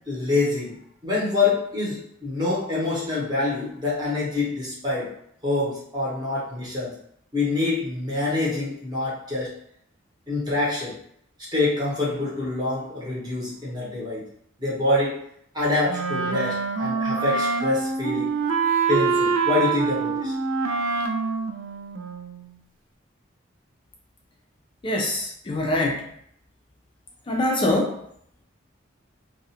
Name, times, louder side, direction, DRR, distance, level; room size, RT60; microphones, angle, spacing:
voice 1, 0.1-0.8 1.0-5.1 5.4-6.9 7.3-9.5 10.3-11.0 11.5-14.2 14.6-15.2 15.5-18.3 18.9-20.3, left 3 dB, 20° right, -7 dB, 0.8 m, -26 dB
Wind instrument woodwind instrument, 15.9-22.5, right 5 dB, 85° right, 0.3 m, -25 dB
voice 2, 24.8-26.0 27.3-28.0, left 1 dB, 25° left, 0 dB, 0.3 m, -24 dB
2.4 x 2.1 x 2.7 m, 0.69 s
head